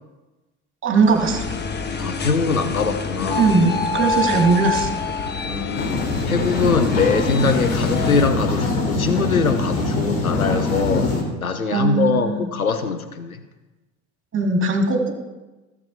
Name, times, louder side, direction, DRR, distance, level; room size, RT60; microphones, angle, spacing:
voice 1, 0.8-1.5 3.3-4.9 11.7-12.5 14.3-15.1, right 4 dB, 30° right, 3 dB, 2.5 m, -19 dB
sound 1, 1.0-8.3, left 4 dB, 25° left, 1.3 m, -27 dB
voice 2, 2.0-3.5 5.4-6.0 6.3-11.1 11.4-13.4, left 5 dB, 90° left, 9 dB, 0.8 m, -22 dB
sound 2, 5.8-11.2, left 2 dB, 60° left, 3.2 m, -23 dB
17.0 x 7.1 x 4.2 m, 1.1 s
figure-of-eight pair, 65°, 41 cm